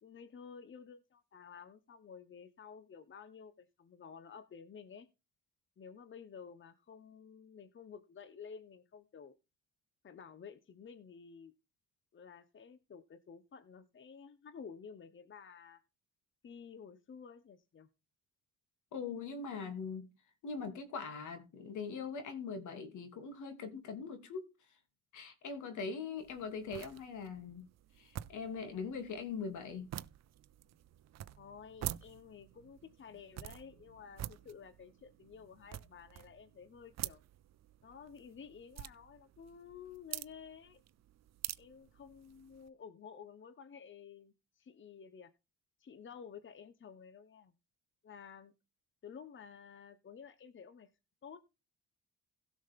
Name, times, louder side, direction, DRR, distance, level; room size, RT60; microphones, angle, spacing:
voice 1, 0.0-5.1 5.8-9.3 10.0-11.5 12.1-15.8 16.4-17.9 31.4-37.2 37.8-40.8 41.6-45.3 45.8-47.5 48.0-48.5 49.0-50.9 51.2-51.4, left 6 dB, 40° left, 1.0 m, -52 dB
voice 2, 18.9-20.1 20.4-24.5 25.1-27.7 28.0-29.9, left 5 dB, 75° left, 2.7 m, -41 dB
sound 1, 26.2-42.7, right 12 dB, 60° right, 0.6 m, -48 dB
16.5 x 6.3 x 3.6 m
cardioid pair, 90°, 30 cm